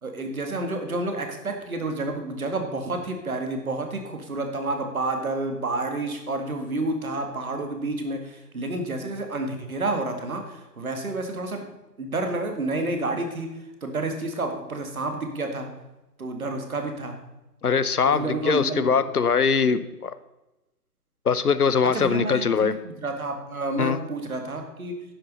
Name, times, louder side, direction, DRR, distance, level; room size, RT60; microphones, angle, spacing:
voice 1, 0.0-11.7 12.0-15.7 16.2-17.2 18.0-19.0 21.9-25.0, right 2 dB, 55° right, 5 dB, 2.3 m, -30 dB
voice 2, 17.6-20.1 21.3-22.7 23.8-24.0, left 6 dB, 65° left, 14 dB, 0.8 m, -22 dB
10.0 x 8.2 x 5.5 m, 0.99 s
figure-of-eight pair, 140°, 49 cm